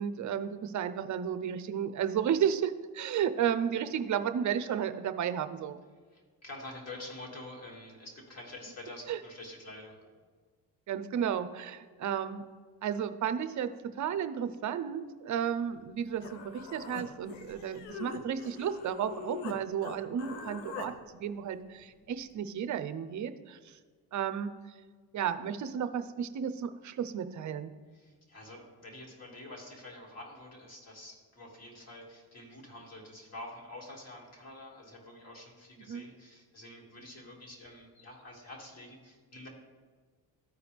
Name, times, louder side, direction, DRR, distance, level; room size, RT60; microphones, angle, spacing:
voice 1, 0.0-5.8 9.1-9.2 10.9-12.4 12.8-23.8 24.1-24.5 25.1-27.7 35.9-36.0, right 8 dB, 45° right, 11 dB, 0.6 m, -33 dB
voice 2, 6.1-10.0 27.9-39.5, left 1 dB, 40° left, -1 dB, 2.4 m, -47 dB
Human voice, 15.9-16.0 16.2-19.6 19.8-20.9, left 6 dB, 90° left, 0.9 m, -43 dB
13.5 x 4.8 x 3.4 m, 1.5 s
cardioid pair, 100°, 40 cm